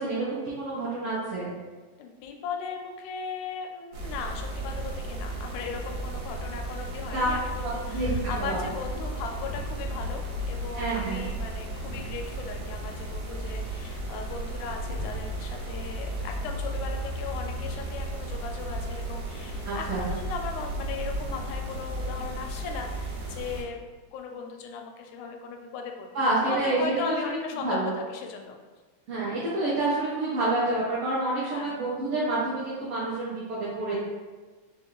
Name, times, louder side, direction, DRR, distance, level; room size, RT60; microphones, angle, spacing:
voice 1, 0.0-1.5 7.1-7.3 7.9-8.6 10.8-11.2 19.6-20.0 26.1-26.8 27.1-27.9 29.1-33.9, right 2 dB, 85° right, -8 dB, 1.2 m, -28 dB
voice 2, 2.0-23.8 24.1-28.6 31.4-31.8, left 5 dB, 80° left, 3 dB, 1.9 m, -37 dB
sound 1, 3.9-23.6, right 1 dB, 70° right, 2.0 m, -34 dB
5.2 x 2.4 x 2.8 m, 1.3 s
omnidirectional pair, 3.4 m